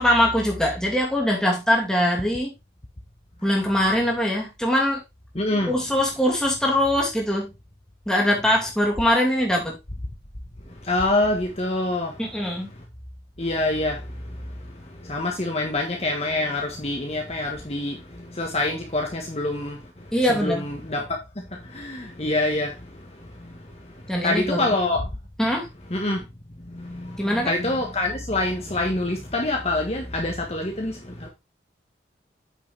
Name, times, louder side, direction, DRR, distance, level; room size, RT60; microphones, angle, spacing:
voice 1, 0.0-2.5 3.4-5.0 5.7-7.5 8.1-9.8 12.2-12.7 20.1-20.7 24.1-24.7 25.4-25.7 27.2-27.5, left 1 dB, 5° left, 2.6 m, -22 dB
voice 2, 5.3-5.7 10.8-12.2 13.4-14.4 14.7-21.2 21.6-23.6 23.8-23.9 24.2-25.1 25.9-26.2 26.6-31.3, left 2 dB, 35° left, 1.4 m, -26 dB
8.6 x 6.7 x 3.4 m
head